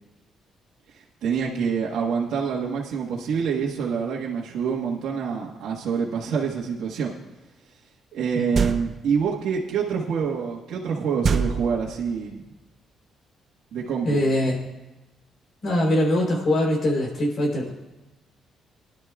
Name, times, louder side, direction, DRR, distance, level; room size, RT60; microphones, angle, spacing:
voice 1, 0.9-7.1 8.1-12.4 13.7-14.2, right 6 dB, 80° right, -3 dB, 1.4 m, -26 dB
sound 1, 8.5-9.2 11.2-12.3, right 5 dB, 50° right, 0.7 m, -25 dB
voice 2, 14.0-14.7 15.6-17.7, left 1 dB, 55° left, 0 dB, 3.6 m, -23 dB
20.0 x 11.5 x 2.4 m, 1.0 s
cardioid pair, 90°, 0 cm